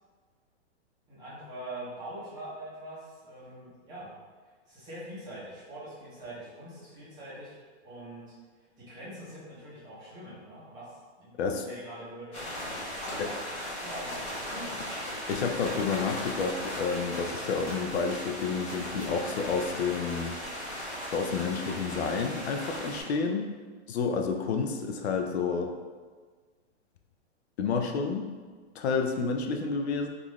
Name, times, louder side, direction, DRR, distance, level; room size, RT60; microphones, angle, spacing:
voice 1, 1.1-4.1 4.7-7.6 7.8-8.3 8.8-14.9, right 1 dB, 10° right, -9 dB, 0.6 m, -44 dB
sound 1, 12.3-23.0, equal, 20° left, 1.0 m, -37 dB
voice 2, 15.3-20.4 21.1-23.5 23.9-25.7 27.6-28.2 28.8-30.1, left 5 dB, 65° left, 4 dB, 0.4 m, -30 dB
3.6 x 2.4 x 3.0 m, 1.5 s
hypercardioid pair, 160°, 35 cm